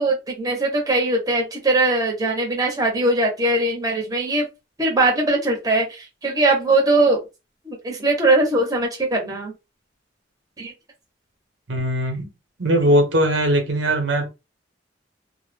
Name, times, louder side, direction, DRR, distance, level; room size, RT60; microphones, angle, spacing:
voice 1, 0.0-4.5 4.8-7.2 7.7-9.5 10.6-10.7, right 2 dB, 20° right, 0.6 m, -20 dB
voice 2, 11.7-12.3 12.6-14.3, right 1 dB, 85° right, 0.9 m, -20 dB
2.1 x 2.0 x 3.3 m
head